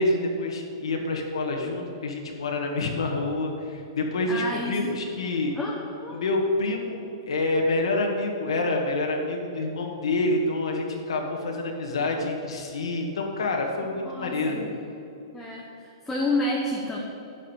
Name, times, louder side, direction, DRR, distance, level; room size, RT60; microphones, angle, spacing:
voice 1, 0.0-5.6 6.1-14.6, left 2 dB, 85° left, 1 dB, 1.8 m, -27 dB
voice 2, 4.3-5.0 5.6-6.2 14.1-14.8 15.3-17.0, left 2 dB, 5° left, -4 dB, 0.9 m, -30 dB
11.0 x 5.4 x 8.2 m, 2.7 s
hypercardioid pair, 160°, 3 cm